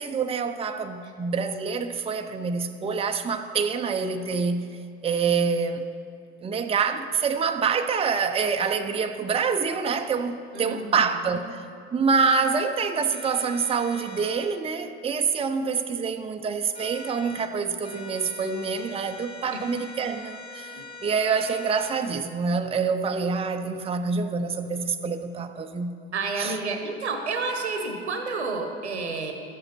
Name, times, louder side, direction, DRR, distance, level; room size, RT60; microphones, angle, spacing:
voice 1, 0.0-4.7 5.0-5.8 6.4-11.6 11.9-25.9 26.4-26.6, right 5 dB, 20° right, 7 dB, 0.6 m, -26 dB
voice 2, 10.5-11.1 19.5-19.6 20.7-20.9 26.1-29.3, right 3 dB, 85° right, 5 dB, 1.1 m, -30 dB
sound 1, 12.2-12.5 13.1-14.5 16.7-17.5 17.8-22.0, left 3 dB, 15° left, 1.4 m, -43 dB
12.5 x 7.9 x 5.7 m, 2.4 s
figure-of-eight pair, 65°, 33 cm